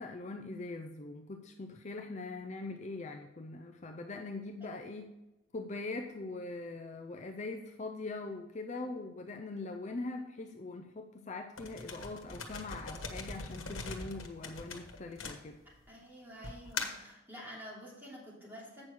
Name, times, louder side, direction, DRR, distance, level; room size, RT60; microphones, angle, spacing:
voice 1, 0.0-5.1 5.5-15.6, left 3 dB, 35° left, 4 dB, 0.5 m, -42 dB
sound 1, 11.6-15.9 16.4-17.1, left 4 dB, 85° left, 1.2 m, -41 dB
voice 2, 15.9-18.8, equal, 10° right, -6 dB, 3.0 m, -49 dB
8.5 x 6.3 x 4.5 m, 0.99 s
head